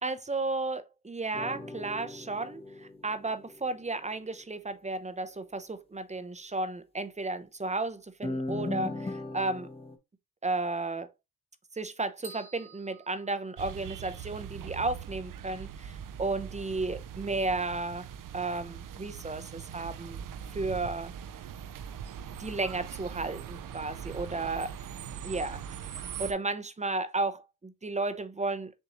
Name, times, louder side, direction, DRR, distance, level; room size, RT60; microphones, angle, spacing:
voice 1, 0.0-9.7 10.4-11.1 11.7-18.1 18.3-20.2 20.5-21.1 22.4-24.7 25.2-25.6 26.2-28.7, right 3 dB, 20° right, 0.6 m, -33 dB
sound 1, 1.3-3.9 8.2-10.0, left 2 dB, 15° left, 0.8 m, -38 dB
sound 2, 12.2-14.2, right 4 dB, 80° right, 1.3 m, -50 dB
sound 3, 13.6-26.3, right 8 dB, 55° right, 0.6 m, -41 dB
7.0 x 2.6 x 2.9 m
cardioid pair, 65°, 38 cm